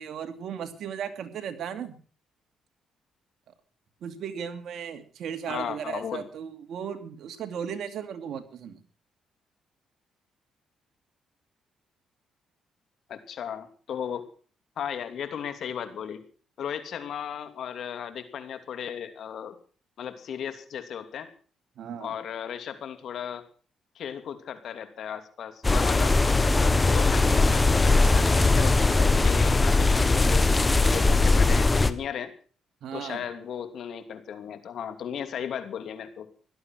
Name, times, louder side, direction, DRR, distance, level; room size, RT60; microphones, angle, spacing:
voice 1, 0.0-2.0 3.5-3.6 4.0-8.8 21.8-22.2 32.8-33.2, right 8 dB, 70° right, 7 dB, 2.4 m, -36 dB
voice 2, 5.5-6.2 13.1-14.2 14.8-16.2 16.6-19.6 20.0-21.3 22.0-23.4 23.9-26.2 26.6-32.3 32.9-36.3, left 8 dB, 65° left, 9 dB, 2.8 m, -36 dB
sound 1, 25.6-31.9, left 3 dB, 20° left, 1.3 m, -20 dB
17.0 x 12.5 x 6.1 m, 0.41 s
cardioid pair, 90°, 0 cm